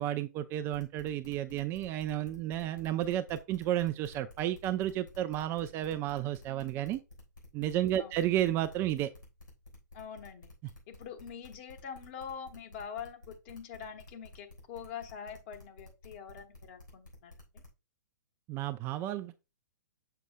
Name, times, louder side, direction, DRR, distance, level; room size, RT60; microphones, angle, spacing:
voice 1, 0.0-7.0 7.5-9.1 18.5-19.4, right 12 dB, 25° right, 0.3 m, -32 dB
sound 1, 0.7-17.7, left 2 dB, 90° left, 3.7 m, -53 dB
voice 2, 9.9-10.5 10.9-17.6, left 7 dB, 40° left, 1.2 m, -44 dB
6.9 x 6.7 x 2.2 m
figure-of-eight pair, 115°, 10 cm